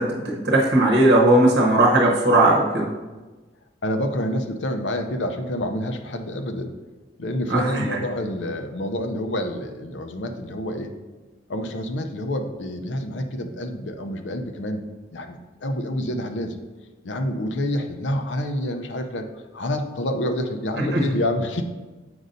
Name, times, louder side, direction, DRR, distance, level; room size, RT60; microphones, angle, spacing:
voice 1, 0.0-2.9 7.5-8.0 20.9-21.0, right 1 dB, 65° right, -2 dB, 0.9 m, -18 dB
voice 2, 3.8-6.8 7.2-10.9 11.5-14.8 15.1-16.6 17.0-19.3 19.5-21.6, left 1 dB, 85° left, 6 dB, 0.6 m, -28 dB
7.8 x 5.3 x 2.6 m, 1.2 s
head